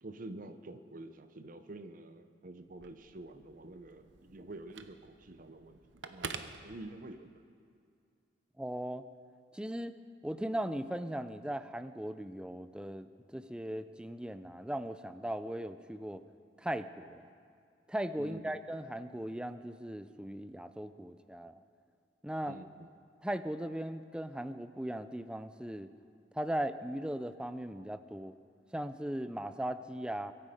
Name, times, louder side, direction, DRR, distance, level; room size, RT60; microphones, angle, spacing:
voice 1, 0.0-7.3 18.2-18.6 22.4-22.9, right 2 dB, 50° right, 10 dB, 0.7 m, -48 dB
Telephone, 2.6-7.4, right 6 dB, 80° right, 0.8 m, -48 dB
voice 2, 8.6-9.0 9.5-9.9 10.2-16.2 16.6-17.2 17.9-21.6 22.2-22.6 23.2-25.9 26.3-28.4 28.7-30.3, right 1 dB, 5° right, 12 dB, 0.4 m, -38 dB
23.0 x 10.0 x 5.1 m, 2.4 s
head